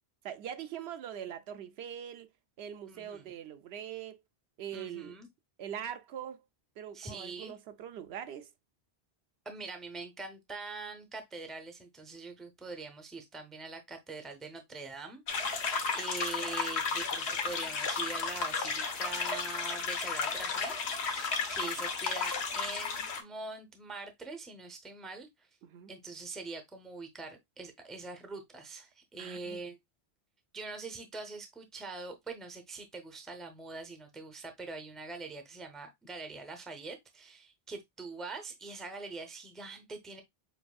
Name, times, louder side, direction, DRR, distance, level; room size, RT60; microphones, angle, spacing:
voice 1, 0.2-2.3 2.6-4.2 4.6-5.1 5.6-6.4 6.8-8.5 25.6-25.9 29.2-29.6, right 9 dB, 75° right, 0.8 m, -42 dB
voice 2, 2.9-3.3 4.7-5.3 6.9-7.5 9.4-15.7 15.9-25.5 25.9-29.8 30.5-40.2, right 3 dB, ahead, 0.5 m, -44 dB
sound 1, 15.3-23.2, left 5 dB, 90° left, 1.1 m, -33 dB
7.1 x 2.5 x 2.3 m
omnidirectional pair, 1.1 m